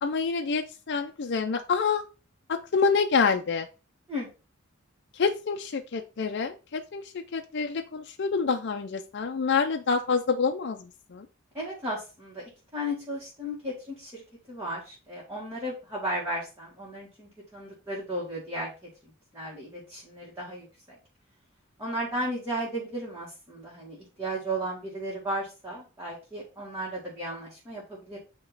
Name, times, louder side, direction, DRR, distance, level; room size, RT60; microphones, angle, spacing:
voice 1, 0.0-2.0 2.5-3.7 5.1-11.3, left 5 dB, 55° left, 4 dB, 0.4 m, -27 dB
voice 2, 11.5-12.4 12.7-14.2 14.5-18.7 19.3-20.7 21.8-28.2, right 1 dB, 10° right, -7 dB, 1.8 m, -34 dB
8.7 x 2.9 x 3.9 m, 0.33 s
head